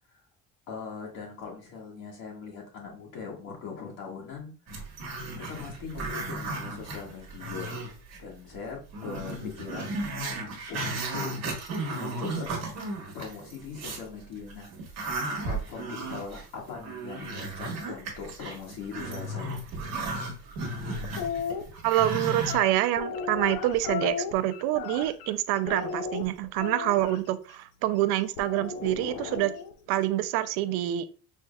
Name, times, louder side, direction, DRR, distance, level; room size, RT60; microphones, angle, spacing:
voice 1, 0.7-4.5 5.3-7.8 8.2-10.0 10.3-11.3 12.0-12.5 13.1-14.7 15.4-19.6, left 5 dB, 60° left, -1 dB, 1.7 m, -40 dB
Growling, 4.7-8.2 8.5-8.6 8.9-14.1 14.5-22.5, right 2 dB, 45° right, 1.3 m, -35 dB
sound 1, 21.0-21.6 22.4-25.3 25.7-27.2 28.4-29.7, left 6 dB, 75° left, 0.7 m, -34 dB
voice 2, 21.8-29.5 29.9-31.2, right 14 dB, 85° right, 12 dB, 0.5 m, -26 dB
5.6 x 3.3 x 2.3 m, 0.37 s
cardioid pair, 175°, 37 cm